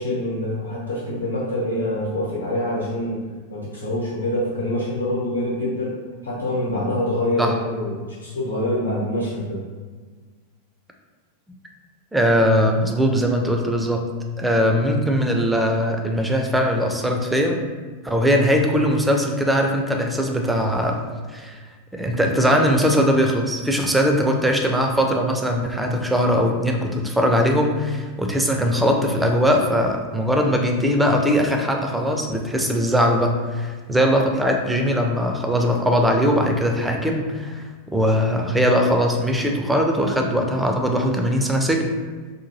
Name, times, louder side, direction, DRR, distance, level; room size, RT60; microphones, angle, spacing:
voice 1, 0.0-3.2 3.5-5.9 6.2-9.6, left 1 dB, 75° left, -7 dB, 0.9 m, -25 dB
voice 2, 12.1-14.0 14.4-17.6 18.0-21.0 21.3-21.5 21.9-41.9, equal, 5° right, 2 dB, 0.4 m, -20 dB
2.8 x 2.1 x 3.0 m, 1.4 s
figure-of-eight pair, 90°, 0 cm